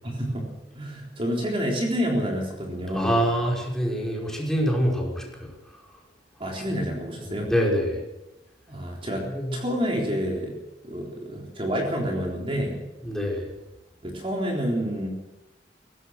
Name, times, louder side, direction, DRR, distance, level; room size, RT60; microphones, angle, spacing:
voice 1, 0.0-0.5 0.7-3.2 6.4-7.5 8.7-10.6 10.8-12.8 14.0-15.1, equal, 30° right, -1 dB, 3.8 m, -28 dB
voice 2, 2.9-5.5 6.8-6.9 7.4-8.0 9.3-9.5 13.1-13.5, equal, 5° left, -2 dB, 5.4 m, -25 dB
22.5 x 17.5 x 6.6 m, 0.97 s
head